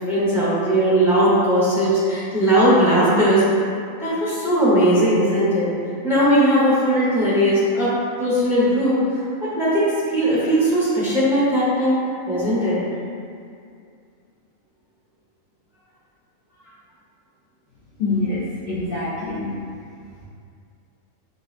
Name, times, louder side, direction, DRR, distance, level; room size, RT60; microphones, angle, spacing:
voice 1, 0.1-3.4 4.0-5.7 6.0-7.9 8.2-9.2 9.6-12.0 12.3-12.8, equal, ahead, -10 dB, 0.7 m, -18 dB
voice 2, 18.0-19.5, left 3 dB, 55° left, -11 dB, 0.7 m, -25 dB
5.2 x 2.2 x 2.4 m, 2.3 s
omnidirectional pair, 1.4 m